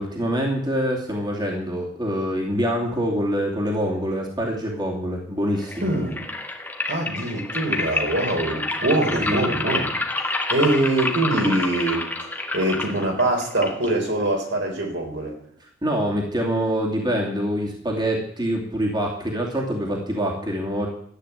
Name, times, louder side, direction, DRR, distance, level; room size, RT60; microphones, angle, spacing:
voice 1, 0.0-5.9 9.2-9.4 15.8-20.9, equal, 20° right, -1 dB, 2.8 m, -25 dB
sound 1, 5.6-14.6, left 2 dB, 10° left, 1.7 m, -29 dB
voice 2, 5.8-6.3 6.9-12.0 12.5-15.3, right 1 dB, 60° right, 1 dB, 4.3 m, -23 dB
13.5 x 9.8 x 8.2 m, 0.66 s
head